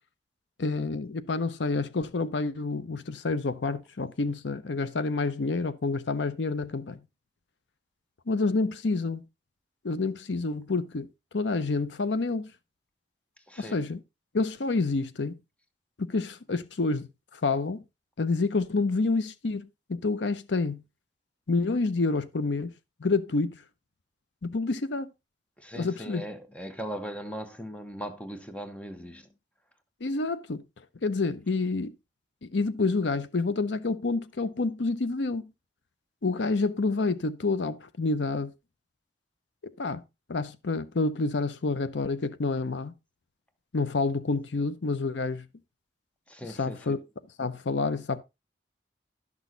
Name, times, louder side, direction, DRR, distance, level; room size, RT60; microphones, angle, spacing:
voice 1, 0.6-7.0 8.3-9.2 9.8-11.1 11.3-12.5 13.6-14.0 14.3-15.4 16.0-17.8 18.2-20.8 21.5-22.7 23.0-23.6 24.4-25.1 25.8-26.2 30.0-30.6 31.0-31.9 32.4-35.5 36.2-38.5 39.6-40.0 40.3-42.9 43.7-45.5 46.5-47.0 47.4-48.2, left 3 dB, 80° left, 0.7 m, -28 dB
voice 2, 13.5-13.8 25.6-29.3 46.3-47.0, equal, 5° left, 1.1 m, -39 dB
12.0 x 6.2 x 3.8 m
head